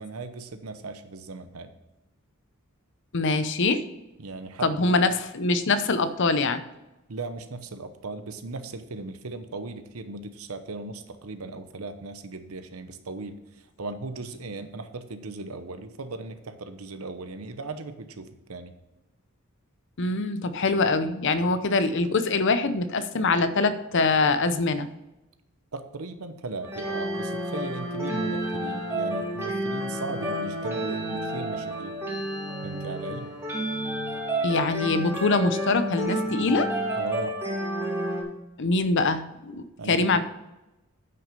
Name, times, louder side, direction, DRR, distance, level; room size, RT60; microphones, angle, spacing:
voice 1, 0.0-1.7 4.2-5.0 7.1-18.7 21.4-21.6 25.7-32.0 32.6-33.3 37.0-37.4 39.8-40.2, right 3 dB, 90° right, 9 dB, 0.9 m, -37 dB
voice 2, 3.1-3.8 4.6-6.6 20.0-24.9 34.4-36.7 38.6-40.2, left 3 dB, 60° left, 11 dB, 0.7 m, -24 dB
sound 1, 26.6-38.2, right 1 dB, 10° right, 2.3 m, -30 dB
9.3 x 6.0 x 5.3 m, 0.98 s
head